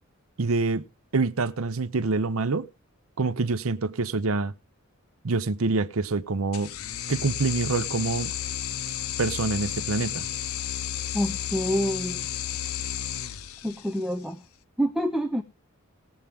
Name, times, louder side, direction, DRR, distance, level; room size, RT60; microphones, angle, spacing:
voice 1, 0.4-0.8 1.1-2.7 3.2-4.5 5.2-6.7 7.1-8.3 9.2-10.2, right 3 dB, 75° right, 0.7 m, -26 dB
sound 1, 6.5-14.1, left 11 dB, 80° left, 0.7 m, -32 dB
voice 2, 11.1-12.3 13.6-14.4 14.8-15.4, equal, ahead, 0.6 m, -27 dB
18.5 x 7.3 x 3.5 m
head